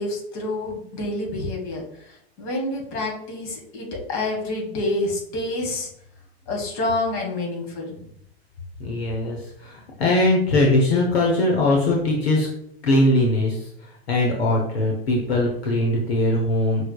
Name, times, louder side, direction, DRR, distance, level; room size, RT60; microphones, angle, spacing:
voice 1, 0.0-5.9 6.5-8.1, left 2 dB, 50° left, 1 dB, 1.6 m, -28 dB
voice 2, 8.8-12.5 12.8-13.6 14.1-16.8, left 1 dB, 80° left, -1 dB, 1.0 m, -21 dB
5.6 x 3.3 x 2.3 m, 0.72 s
hypercardioid pair, 105°, 31 cm